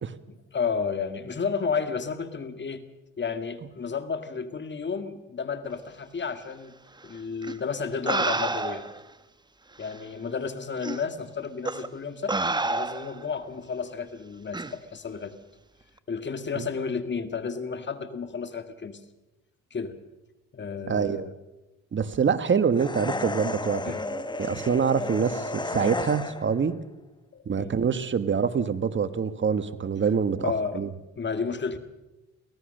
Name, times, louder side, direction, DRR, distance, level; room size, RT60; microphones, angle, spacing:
voice 1, 0.3-2.8 3.2-6.7 7.0-8.8 9.8-12.4 12.6-15.3 16.1-19.0 19.7-20.0 20.5-21.3 23.9-24.1 27.3-27.7 30.4-30.8 31.2-31.8, left 5 dB, 35° left, 9 dB, 2.1 m, -32 dB
sound 1, 7.4-7.5 8.1-9.0 9.9-10.0 10.8-11.0 11.6-11.9 12.3-13.2 14.5-14.7, right 2 dB, 15° right, 1.1 m, -28 dB
voice 2, 20.9-21.3 21.9-23.8 24.1-26.7 27.5-30.9, right 6 dB, 40° right, 12 dB, 1.4 m, -25 dB
sound 2, 22.7-26.6, left 2 dB, 15° left, 1.1 m, -33 dB
24.0 x 17.0 x 6.6 m, 1.0 s
cardioid pair, 90°, 30 cm